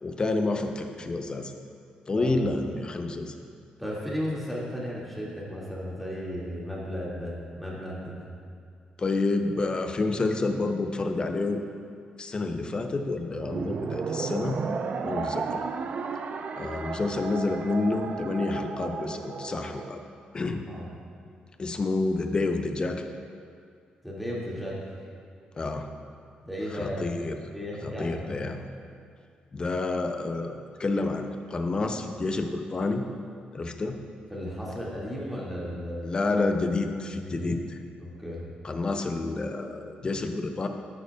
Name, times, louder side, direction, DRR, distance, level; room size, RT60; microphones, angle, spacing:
voice 1, 0.0-1.5 2.1-3.3 9.0-11.6 12.2-14.6 15.0-15.6 16.6-20.0 20.3-20.7 21.6-23.1 25.6-25.9 26.7-27.4 27.8-28.7 29.5-33.0 33.5-34.0 36.0-37.6 38.6-40.7, left 3 dB, 30° left, 5 dB, 0.6 m, -29 dB
voice 2, 3.8-8.3 20.7-20.9 24.0-24.8 26.4-27.3 27.5-28.5 34.3-36.2 37.1-37.5 38.0-38.4, equal, ahead, -6 dB, 2.0 m, -35 dB
sound 1, 13.4-19.9, right 5 dB, 55° right, 0.4 m, -33 dB
10.0 x 8.2 x 2.3 m, 2.3 s
cardioid pair, 100°, 3 cm